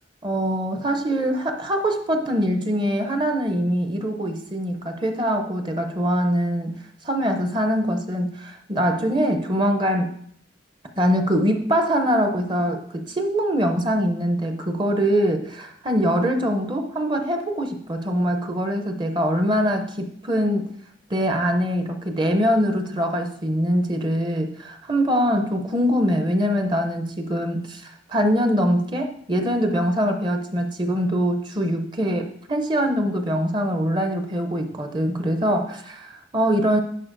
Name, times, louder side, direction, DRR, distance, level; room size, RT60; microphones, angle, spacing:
voice 1, 0.2-6.8 7.0-10.1 11.0-20.7 21.1-36.8, equal, 25° right, 6 dB, 0.6 m, -23 dB
11.0 x 4.7 x 2.5 m, 0.66 s
head